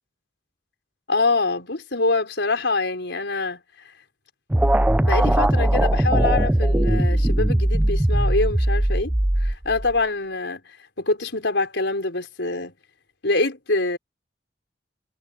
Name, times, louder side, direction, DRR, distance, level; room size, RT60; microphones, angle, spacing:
voice 1, 1.1-3.9 5.0-12.7 13.2-14.0, left 3 dB, 75° left, 4.8 m, -25 dB
sound 1, 4.5-10.0, right 1 dB, 5° right, 0.3 m, -20 dB
head